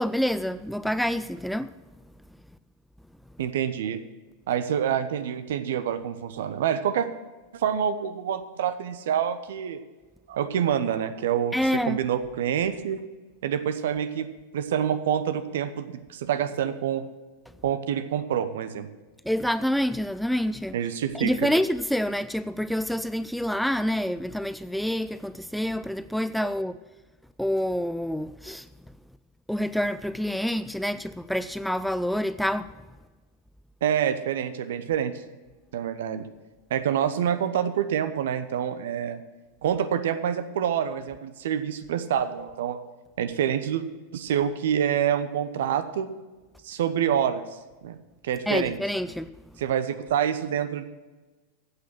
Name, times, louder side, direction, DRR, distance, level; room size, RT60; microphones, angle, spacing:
voice 1, 0.0-1.7 11.5-12.0 19.2-20.8 21.1-26.8 27.4-28.7 29.5-32.7 48.5-49.3, equal, ahead, 0.4 m, -27 dB
voice 2, 3.4-4.0 4.5-7.1 7.5-9.8 10.3-11.5 11.8-13.0 13.4-14.3 14.5-17.1 17.6-18.9 20.7-21.5 33.8-35.2 35.7-36.2 36.7-39.2 39.6-42.8 43.2-43.8 44.1-46.1 46.6-47.4 47.8-48.0 48.2-48.8 49.6-50.9, right 9 dB, 60° right, 1.0 m, -27 dB
15.0 x 8.6 x 6.2 m
figure-of-eight pair, 90°, 0 cm